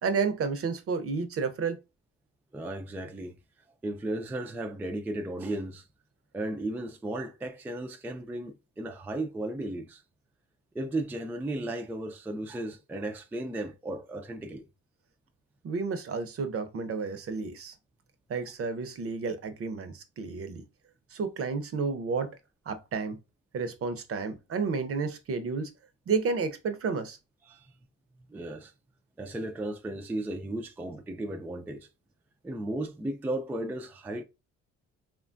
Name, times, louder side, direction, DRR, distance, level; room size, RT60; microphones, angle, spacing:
voice 1, 0.0-1.8 15.6-17.7 18.3-20.6 21.1-22.4 22.7-23.2 23.5-25.7 26.1-27.2, right 5 dB, 50° right, 0.6 m, -31 dB
voice 2, 2.5-3.3 3.8-5.9 6.3-10.0 10.7-14.6 27.5-27.7 28.3-28.7 29.2-31.9 32.4-34.2, right 1 dB, 5° right, 0.3 m, -35 dB
3.1 x 2.2 x 2.5 m
cardioid pair, 90°, 30 cm